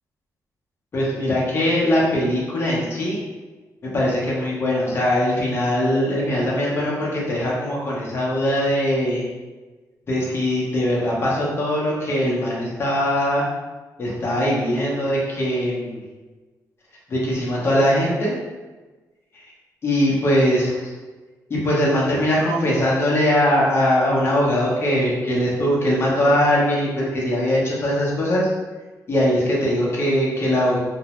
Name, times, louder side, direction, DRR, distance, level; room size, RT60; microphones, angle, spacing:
voice 1, 0.9-3.2 3.9-9.3 10.1-13.5 14.0-16.0 17.1-18.4 19.3-19.4 19.8-20.9 21.5-28.5 29.1-30.8, equal, 35° left, -5 dB, 0.7 m, -21 dB
2.6 x 2.0 x 2.9 m, 1.2 s
wide cardioid pair, 155°, 7 cm